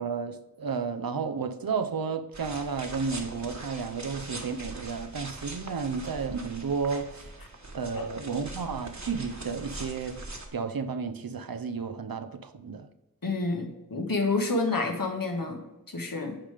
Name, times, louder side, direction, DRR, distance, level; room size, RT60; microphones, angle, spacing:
voice 1, 0.0-7.3 7.7-10.2 10.5-12.9, right 5 dB, 85° right, 0.6 m, -32 dB
sound 1, 2.3-10.5, right 2 dB, 55° right, 1.3 m, -42 dB
voice 2, 13.2-16.4, left 3 dB, 75° left, 1.4 m, -29 dB
8.9 x 5.0 x 3.4 m
wide cardioid pair, 45°, 35 cm